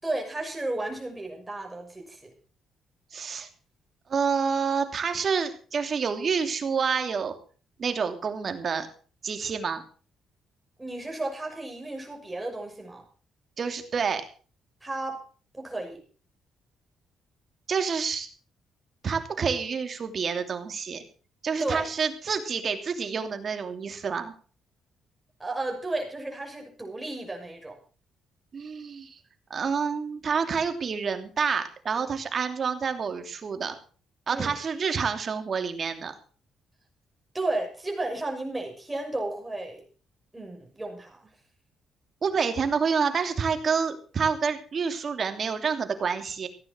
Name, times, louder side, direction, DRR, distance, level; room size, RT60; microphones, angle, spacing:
voice 1, 0.0-2.3 10.8-13.0 14.8-15.2 15.5-16.0 21.6-21.9 25.4-27.8 34.3-34.5 37.3-39.8 40.3-41.3, right 2 dB, 15° right, 1 dB, 6.8 m, -33 dB
voice 2, 3.1-3.5 4.1-7.3 7.8-8.9 9.2-9.8 13.6-14.2 17.7-18.3 19.0-21.0 21.4-24.3 28.5-29.1 29.5-33.7 34.3-36.1 42.2-46.5, right 6 dB, 45° right, 7 dB, 2.9 m, -28 dB
16.5 x 9.8 x 6.3 m, 0.41 s
cardioid pair, 90°, 0 cm